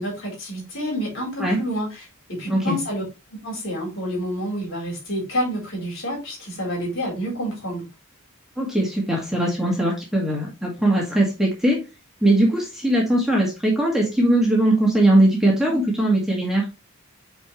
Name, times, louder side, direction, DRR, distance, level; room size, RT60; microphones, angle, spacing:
voice 1, 0.0-3.0 3.3-7.8, equal, 60° left, 0 dB, 4.1 m, -28 dB
voice 2, 8.6-11.8 12.2-16.6, right 1 dB, ahead, -3 dB, 2.0 m, -20 dB
8.4 x 4.6 x 3.1 m, 0.26 s
head